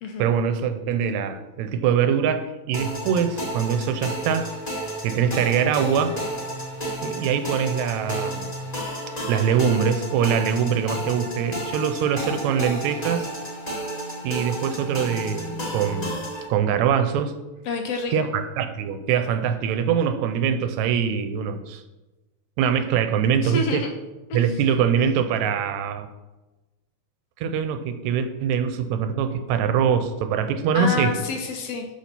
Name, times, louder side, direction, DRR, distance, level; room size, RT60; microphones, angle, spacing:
voice 1, 0.2-4.5 5.0-6.2 7.0-8.5 9.3-13.3 14.2-16.2 16.5-17.3 18.1-21.8 22.6-23.9 24.3-26.1 27.4-31.2, right 7 dB, 80° right, 9 dB, 1.9 m, -23 dB
sound 1, 2.7-16.5, right 1 dB, 20° left, 1.2 m, -32 dB
voice 2, 17.7-18.1 23.4-23.9 24.3-24.5 30.7-31.9, left 4 dB, 70° left, 4 dB, 1.6 m, -28 dB
6.3 x 6.1 x 5.7 m, 1.1 s
omnidirectional pair, 3.3 m